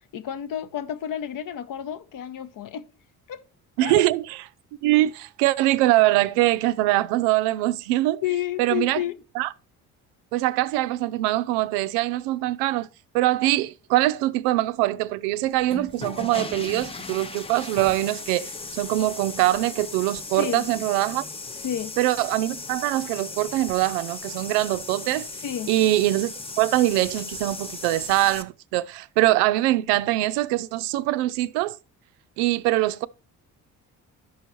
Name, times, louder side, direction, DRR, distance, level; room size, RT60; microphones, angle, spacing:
voice 1, 0.1-2.9 3.3-3.4 3.8-4.0 8.2-9.2 20.4-20.7 21.6-22.0 25.4-25.7, left 10 dB, 45° left, 0.8 m, -30 dB
voice 2, 3.8-4.4 4.8-8.2 8.6-9.0 9.4-9.5 10.3-12.9 13.1-21.2 22.0-25.3 25.7-31.8 32.4-33.1, right 16 dB, 65° right, 0.5 m, -23 dB
sound 1, 15.5-28.4, left 3 dB, 15° left, 0.6 m, -37 dB
11.5 x 5.5 x 3.0 m
hypercardioid pair, 50°, 44 cm